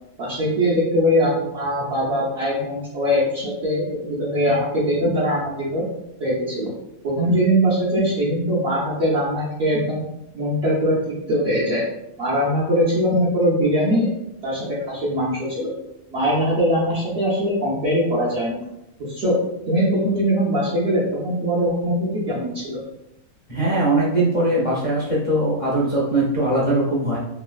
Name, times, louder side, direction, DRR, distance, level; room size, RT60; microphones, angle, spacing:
voice 1, 0.2-5.8 6.2-6.7 7.0-10.0 10.3-11.8 12.2-14.1 14.4-15.7 16.1-18.6 19.0-19.4 19.7-22.8, equal, 55° right, -9 dB, 0.9 m, -21 dB
voice 2, 23.5-27.2, right 1 dB, 55° left, -6 dB, 0.3 m, -20 dB
3.1 x 2.6 x 2.3 m, 0.84 s
omnidirectional pair, 1.5 m